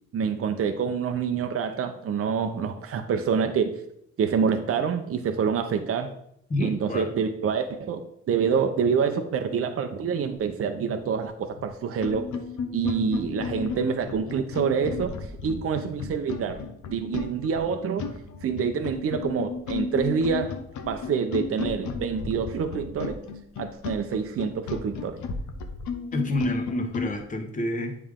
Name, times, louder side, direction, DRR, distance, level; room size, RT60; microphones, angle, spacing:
voice 1, 0.1-3.7 4.2-6.1 6.6-12.3 12.7-15.1 15.4-16.6 16.9-18.1 18.4-20.5 20.9-23.2 23.6-25.2, right 6 dB, 50° right, 7 dB, 0.7 m, -26 dB
voice 2, 6.5-7.1 26.1-28.0, left 1 dB, 25° left, 3 dB, 1.2 m, -28 dB
sound 1, 11.5-11.7 12.0-27.1, left 5 dB, 75° left, 0.9 m, -34 dB
8.7 x 3.4 x 3.7 m, 0.73 s
cardioid pair, 90°, 30 cm